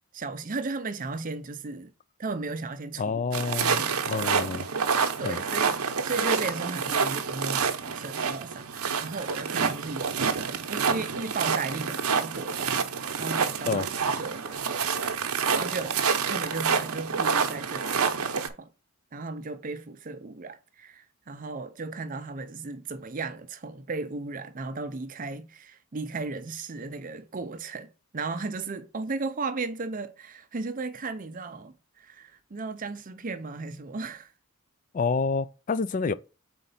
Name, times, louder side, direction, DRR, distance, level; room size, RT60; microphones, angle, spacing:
voice 1, 0.1-1.9 2.2-4.9 5.2-12.9 13.2-14.6 15.5-18.7 19.1-34.3, right 3 dB, 40° right, 0.5 m, -36 dB
voice 2, 3.0-3.8 4.1-4.7 5.2-5.4 13.6-13.9 34.9-36.1, left 4 dB, 35° left, 0.3 m, -28 dB
sound 1, 3.3-18.5, right 6 dB, 85° right, 0.8 m, -28 dB
4.4 x 3.9 x 5.5 m
head